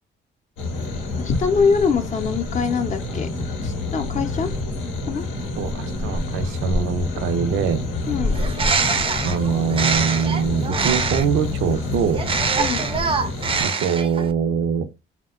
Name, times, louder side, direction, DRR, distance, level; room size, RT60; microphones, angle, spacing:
sound 1, 0.6-13.7, left 2 dB, 85° left, 0.7 m, -28 dB
voice 1, 1.2-3.3 3.6-4.5 5.1-5.2 8.1-8.3 12.6-12.9, left 5 dB, 40° left, 0.5 m, -23 dB
voice 2, 5.6-7.9 9.2-12.2 13.6-14.9, right 6 dB, 85° right, 0.4 m, -23 dB
Bird, 8.3-11.4 12.1-14.3, right 5 dB, 25° right, 0.4 m, -24 dB
2.7 x 2.1 x 2.3 m
cardioid pair, 90°, 20 cm